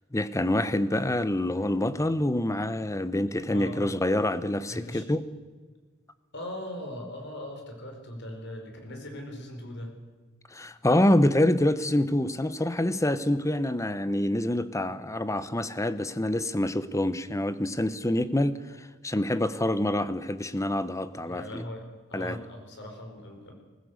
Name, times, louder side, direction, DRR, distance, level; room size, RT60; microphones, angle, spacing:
voice 1, 0.1-5.2 10.5-21.6 22.1-22.4, left 1 dB, 15° left, 0.9 m, -26 dB
voice 2, 3.5-3.8 4.7-5.0 6.3-9.9 21.3-21.8 22.1-23.5, left 1 dB, 60° left, 4.7 m, -39 dB
20.5 x 15.5 x 8.1 m
head